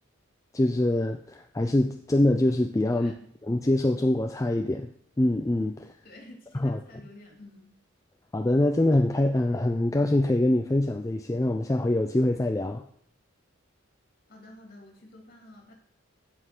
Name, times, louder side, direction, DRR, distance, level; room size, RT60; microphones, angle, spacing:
voice 1, 0.5-3.1 3.5-4.9 5.2-5.9 6.6-6.8 8.3-12.8, left 1 dB, 15° left, 5 dB, 0.4 m, -24 dB
voice 2, 2.9-3.3 6.0-7.8 14.3-15.7, left 1 dB, 45° left, 1 dB, 2.9 m, -50 dB
8.0 x 7.9 x 6.1 m, 0.65 s
head